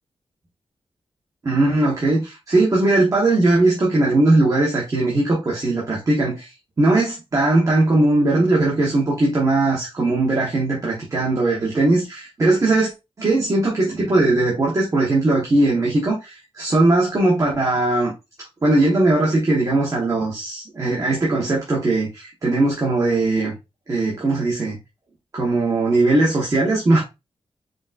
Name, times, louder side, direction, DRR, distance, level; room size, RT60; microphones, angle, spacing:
voice 1, 1.4-6.5 6.8-12.9 13.2-18.1 18.6-23.5 23.9-24.8 25.3-27.0, right 2 dB, 30° right, 1.2 m, -19 dB
5.1 x 3.8 x 2.5 m
wide cardioid pair, 180°, 11 cm